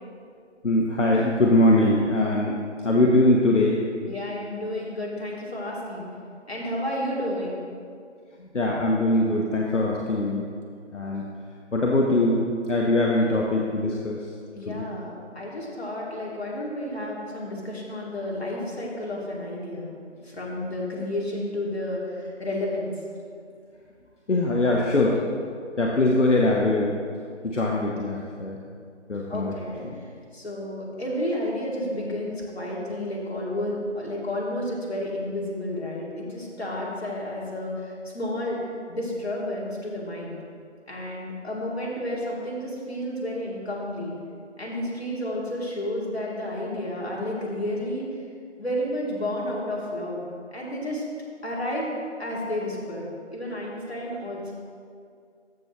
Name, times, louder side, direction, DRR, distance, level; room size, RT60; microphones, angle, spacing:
voice 1, 0.6-2.6 2.8-3.8 8.5-10.4 10.9-11.2 11.7-14.3 14.7-14.8 24.3-25.2 25.8-26.9 27.4-28.6 29.1-29.5, left 1 dB, 80° left, -2 dB, 1.0 m, -22 dB
voice 2, 4.1-6.1 6.5-7.6 14.6-19.9 20.2-22.9 29.3-29.9 30.3-38.6 38.9-40.4 40.9-44.1 44.6-48.1 48.6-50.2 50.5-51.0 51.4-51.9 52.2-54.5, left 1 dB, 60° left, -4 dB, 2.3 m, -31 dB
14.0 x 5.9 x 3.0 m, 2.3 s
figure-of-eight pair, 165°, 36 cm